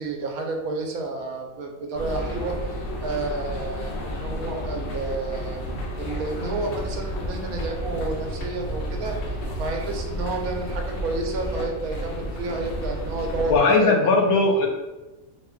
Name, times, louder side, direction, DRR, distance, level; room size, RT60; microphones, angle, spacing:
voice 1, 0.0-2.5 3.0-5.6 6.0-9.2 9.6-14.4, right 3 dB, 85° right, 2 dB, 1.1 m, -30 dB
sound 1, 1.9-13.6, equal, 60° left, 0.6 m, -31 dB
voice 2, 13.5-14.7, left 3 dB, 90° left, 2 dB, 1.1 m, -18 dB
2.8 x 2.2 x 3.6 m, 1.1 s
omnidirectional pair, 1.5 m